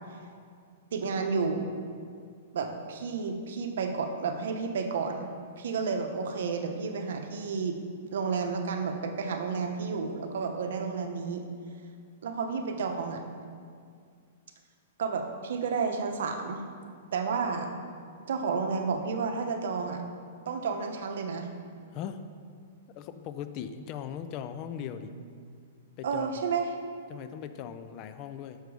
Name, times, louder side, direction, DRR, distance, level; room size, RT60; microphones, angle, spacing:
voice 1, 0.9-1.7 2.5-5.3 5.6-7.8 8.1-11.4 12.2-13.2 15.0-16.6 17.1-17.7 18.3-20.0 20.5-21.5 25.1-25.2 26.0-26.7, right 5 dB, 75° right, 5 dB, 0.8 m, -31 dB
voice 2, 21.9-22.2 22.9-25.1 26.0-26.4 27.1-28.6, left 9 dB, 35° left, 10 dB, 0.4 m, -39 dB
6.7 x 6.2 x 4.7 m, 2.2 s
hypercardioid pair, 155°, 0 cm